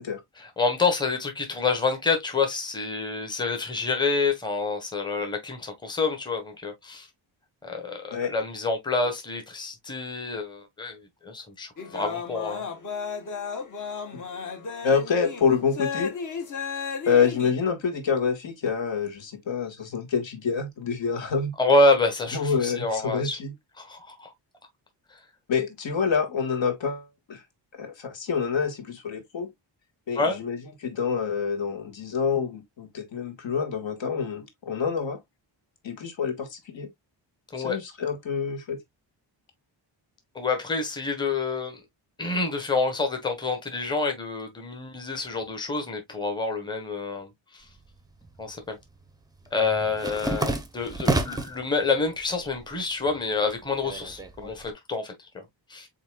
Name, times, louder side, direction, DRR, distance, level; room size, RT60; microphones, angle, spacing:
voice 1, 0.4-7.1 7.6-12.6 21.6-23.4 23.8-24.3 25.1-25.2 30.2-30.4 37.5-37.8 40.3-41.8 42.2-47.6 48.4-48.8 49.5-55.4 55.7-55.9, left 3 dB, 10° left, 1.0 m, -27 dB
sound 1, 11.8-17.5, left 5 dB, 40° left, 1.0 m, -34 dB
voice 2, 14.8-16.1 17.0-21.5 22.3-23.5 25.5-27.4 27.8-29.5 30.1-35.2 35.8-36.9 37.5-38.8 54.4-54.5, left 6 dB, 70° left, 1.7 m, -27 dB
sound 2, 47.7-48.5 48.8-51.6 52.1-52.7 53.0-54.7, right 2 dB, 10° right, 0.5 m, -30 dB
7.9 x 2.8 x 2.2 m
wide cardioid pair, 180°, 46 cm